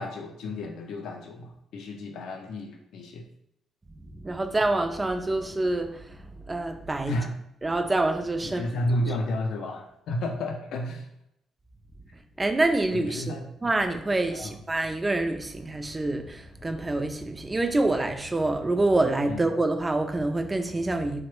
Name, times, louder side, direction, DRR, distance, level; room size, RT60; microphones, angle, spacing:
voice 1, 0.0-3.2 7.1-7.4 8.4-11.1 12.9-13.5 14.3-14.6 19.3-19.4, left 1 dB, 75° left, 0.4 m, -32 dB
voice 2, 4.0-7.2 7.6-8.7 12.4-21.2, right 2 dB, 20° right, 0.3 m, -26 dB
3.1 x 2.0 x 3.0 m
cardioid pair, 90°, 0 cm